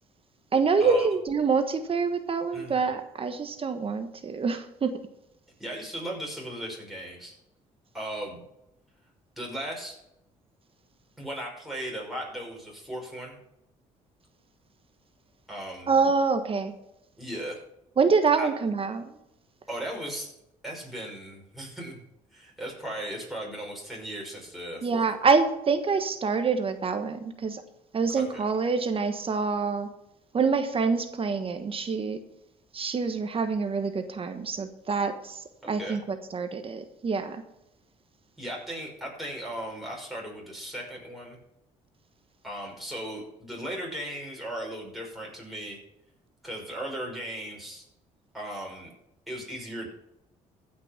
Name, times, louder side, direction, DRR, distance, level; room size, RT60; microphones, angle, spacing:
voice 1, 0.5-4.9 15.9-16.7 18.0-19.0 24.8-27.6 27.9-29.9 30.3-32.2 32.7-35.4 35.7-37.4, right 5 dB, 40° right, 8 dB, 1.3 m, -26 dB
voice 2, 2.5-2.9 5.6-7.3 7.9-8.5 9.4-10.0 11.2-13.4 15.5-16.0 17.2-17.6 18.4-18.5 19.7-20.3 20.6-22.0 22.3-25.1 28.2-28.4 35.6-36.0 38.4-41.4 42.4-45.8 46.4-47.8 48.3-48.9 49.3-49.9, right 1 dB, ahead, -2 dB, 5.8 m, -37 dB
15.5 x 6.1 x 6.0 m, 0.84 s
supercardioid pair, 75°, 14 cm